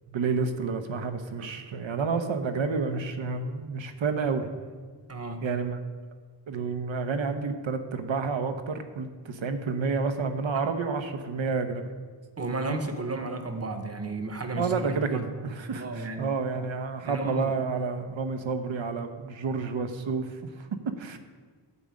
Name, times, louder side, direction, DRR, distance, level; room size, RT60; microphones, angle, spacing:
voice 1, 0.1-4.5 5.4-5.8 6.5-11.9 14.6-20.7 21.0-21.2, right 4 dB, 85° right, 8 dB, 1.0 m, -30 dB
voice 2, 5.1-5.4 12.4-15.3 15.7-16.4 17.0-17.5, right 2 dB, 35° right, 6 dB, 0.9 m, -33 dB
11.0 x 5.2 x 8.4 m, 1.5 s
wide cardioid pair, 165°, 45 cm